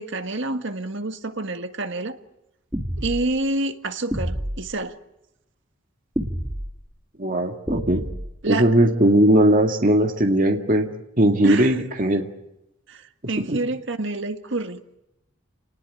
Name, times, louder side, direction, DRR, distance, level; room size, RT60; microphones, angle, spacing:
voice 1, 0.0-2.2 3.0-5.0 8.4-8.7 11.4-11.8 12.9-14.8, right 2 dB, 65° right, 1.7 m, -28 dB
sound 1, 2.7-3.3 4.1-4.7 6.2-6.7 7.7-8.3, equal, 15° right, 1.8 m, -28 dB
voice 2, 7.2-8.0 8.5-10.9 11.2-12.3 13.5-13.6, right 1 dB, 40° right, 2.0 m, -19 dB
28.5 x 19.5 x 9.1 m
head